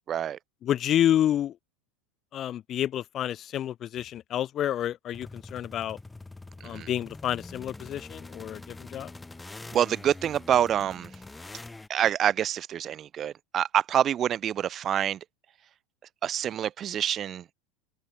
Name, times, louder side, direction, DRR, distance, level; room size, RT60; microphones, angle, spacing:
voice 1, 0.1-0.4 6.6-6.9 9.7-11.1 11.9-15.2 16.2-17.4, right 10 dB, 35° right, 0.7 m, -26 dB
voice 2, 0.6-1.5 2.3-6.0 6.6-9.1, left 11 dB, 40° left, 1.0 m, -29 dB
sound 1, 5.1-11.9, left 2 dB, 10° left, 1.7 m, -44 dB
open air
hypercardioid pair, 90°, 0 cm